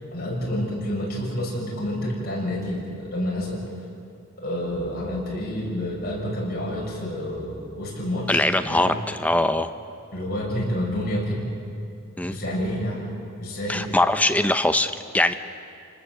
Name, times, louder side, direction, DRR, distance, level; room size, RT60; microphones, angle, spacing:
voice 1, 0.1-3.6 4.4-8.9 10.1-11.4 12.3-13.0 13.4-13.9, left 1 dB, 45° left, -4 dB, 7.1 m, -28 dB
voice 2, 8.3-9.7 12.2-12.4 13.7-15.3, left 1 dB, 5° left, 9 dB, 0.7 m, -22 dB
28.5 x 19.5 x 7.8 m, 2.4 s
head